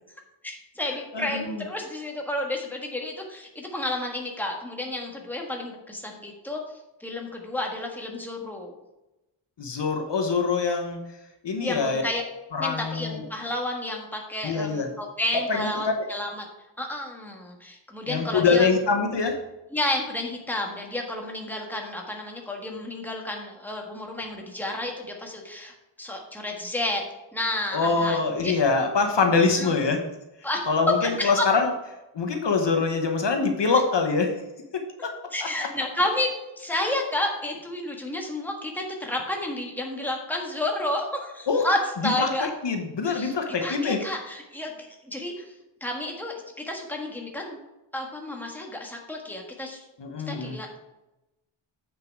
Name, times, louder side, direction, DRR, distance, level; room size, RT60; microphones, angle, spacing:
voice 1, 0.4-6.6 7.0-8.7 11.6-12.2 12.6-16.4 16.8-18.7 19.7-27.0 27.3-28.5 29.5-29.7 30.4-31.4 35.3-36.3 36.6-42.5 43.0-44.7 45.1-45.3 45.8-46.3 46.6-47.6 47.9-49.8 50.3-50.9, left 1 dB, 5° left, 0 dB, 1.5 m, -31 dB
voice 2, 1.1-1.6 9.6-11.0 11.4-12.0 12.5-13.2 14.4-14.9 15.5-16.1 18.1-19.4 27.7-30.0 30.7-31.7 32.1-34.3 34.7-35.1 36.8-36.9 41.5-41.6 42.2-44.0 50.0-50.6, left 4 dB, 55° left, 4 dB, 1.1 m, -24 dB
8.0 x 6.7 x 4.6 m, 0.97 s
wide cardioid pair, 145°, 50 cm